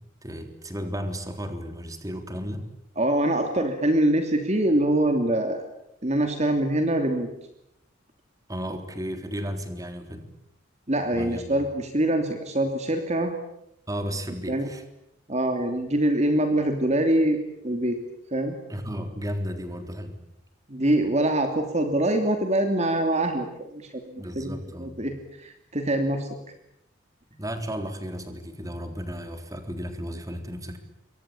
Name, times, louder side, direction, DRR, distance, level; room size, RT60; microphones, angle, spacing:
voice 1, 0.0-2.7 8.5-10.3 11.1-11.6 13.9-14.8 18.7-20.2 24.2-24.9 27.4-30.8, equal, 15° right, 7 dB, 3.6 m, -34 dB
voice 2, 3.0-5.6 6.0-7.3 10.9-13.3 14.5-14.7 15.3-17.4 17.6-18.0 18.3-18.5 20.7-23.5 23.7-25.1 25.4-26.3, right 1 dB, 35° right, 6 dB, 2.9 m, -24 dB
28.5 x 24.0 x 8.6 m, 0.79 s
head